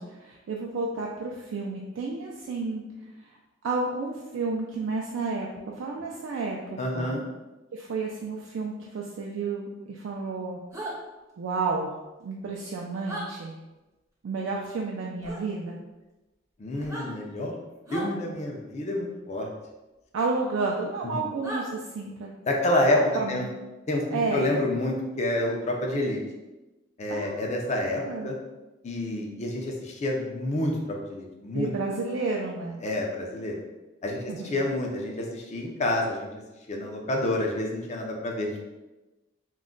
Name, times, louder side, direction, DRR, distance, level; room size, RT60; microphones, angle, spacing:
voice 1, 0.0-2.8 3.2-3.3 3.6-7.1 7.7-10.6 11.4-13.6 14.2-15.8 20.1-22.4 22.6-23.5 24.1-24.5 27.1-27.7 28.0-28.3 31.5-32.8 34.3-34.6, right 3 dB, 80° right, -1 dB, 0.3 m, -31 dB
voice 2, 6.8-7.2 16.6-17.5 17.9-19.5 21.0-21.2 22.5-23.0 23.3-23.4 23.9-26.2 27.0-28.4 28.8-30.8 31.0-31.7 32.8-33.6 34.0-36.3 36.7-38.6, left 1 dB, 35° left, 0 dB, 0.4 m, -28 dB
sound 1, 10.7-10.9 13.0-13.3 15.2-15.4 16.8-17.1 17.9-18.1 20.2-20.3 21.4-21.6, right 1 dB, 15° right, 0.6 m, -35 dB
2.3 x 2.1 x 3.7 m, 1.1 s
head